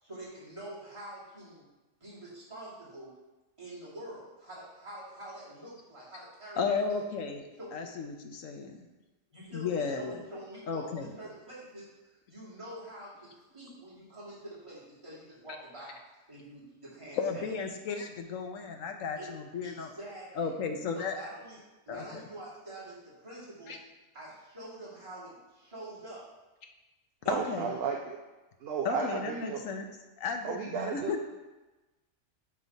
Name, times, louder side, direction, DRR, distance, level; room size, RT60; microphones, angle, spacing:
voice 1, 0.0-1.6 2.0-3.1 3.6-7.1 7.6-7.9 8.7-8.8 9.3-10.9 11.2-16.0 16.3-17.6 19.2-19.3 19.6-20.5 20.9-21.6 21.9-23.7 24.1-26.3 27.2-27.5, right 1 dB, 25° right, -9 dB, 2.6 m, -46 dB
voice 2, 6.6-7.4 7.7-8.8 9.5-10.2 10.7-11.1 17.1-19.9 20.3-21.2 21.9-22.2 23.7-23.8 27.3-27.7 28.8-29.9 30.2-31.2, left 5 dB, 80° left, 5 dB, 1.2 m, -34 dB
voice 3, 27.3-28.2 28.6-29.6 30.4-31.2, right 6 dB, 60° right, 2 dB, 0.8 m, -33 dB
10.5 x 3.6 x 4.0 m, 1.1 s
omnidirectional pair, 1.3 m